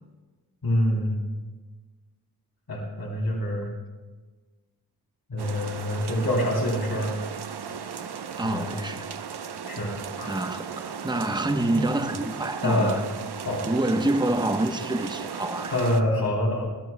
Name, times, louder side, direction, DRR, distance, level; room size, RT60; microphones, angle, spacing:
voice 1, 0.6-1.2 2.7-3.7 5.3-7.1 8.4-8.7 9.7-10.3 12.6-13.0 13.4-13.6 15.7-16.7, left 1 dB, 60° left, -2 dB, 3.2 m, -26 dB
sound 1, 5.4-16.0, right 7 dB, 75° right, 0.8 m, -36 dB
voice 2, 8.4-9.1 10.3-13.0 13.6-15.8, right 1 dB, 10° right, 7 dB, 0.9 m, -27 dB
21.0 x 14.0 x 2.2 m, 1.3 s
cardioid pair, 40°, 40 cm